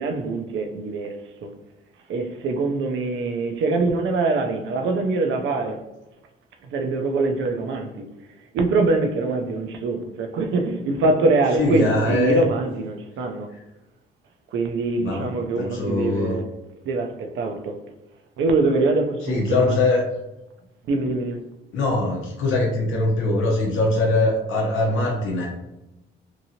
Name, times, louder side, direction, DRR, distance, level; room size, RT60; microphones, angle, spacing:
voice 1, 0.0-1.5 2.1-5.8 6.6-8.1 8.5-13.5 14.5-16.5 16.9-17.8 18.4-19.8 20.9-21.4, right 3 dB, 75° right, 0.5 m, -23 dB
voice 2, 11.6-12.4 15.0-15.3 15.6-16.4 19.3-20.0 21.7-25.5, left 2 dB, 85° left, 0.7 m, -22 dB
2.9 x 2.6 x 2.7 m
cardioid pair, 90°, 20 cm